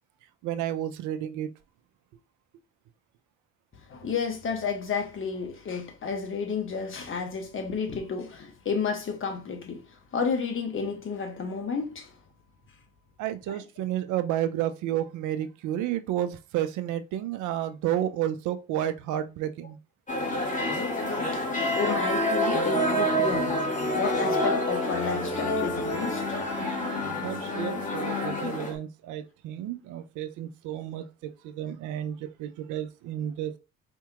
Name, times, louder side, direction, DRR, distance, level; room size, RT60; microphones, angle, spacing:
voice 1, 0.4-1.5 13.2-19.8 21.4-21.6 26.6-33.6, right 11 dB, 70° right, 0.6 m, -31 dB
voice 2, 3.9-9.8 10.1-12.1 21.3-21.4 21.7-23.7 23.9-26.2, left 5 dB, 40° left, 1.2 m, -31 dB
sound 1, 20.1-28.7, left 1 dB, 25° left, 1.6 m, -27 dB
4.4 x 2.8 x 2.4 m
supercardioid pair, 65°, 31 cm